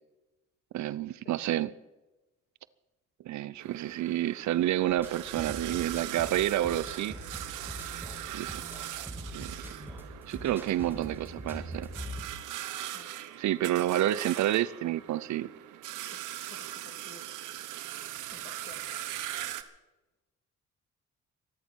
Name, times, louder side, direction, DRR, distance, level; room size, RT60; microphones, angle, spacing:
voice 1, 0.7-1.7 3.2-7.2 8.3-8.6 9.3-9.7 10.3-11.9 13.4-15.5, right 13 dB, 70° right, 0.6 m, -29 dB
sound 1, 3.6-19.6, right 13 dB, 85° right, 1.1 m, -41 dB
sound 2, 4.9-12.3, equal, 5° right, 6.5 m, -43 dB
voice 2, 16.9-17.2 18.3-19.0, left 4 dB, 35° left, 2.3 m, -52 dB
24.5 x 11.5 x 4.5 m
cardioid pair, 90°, 30 cm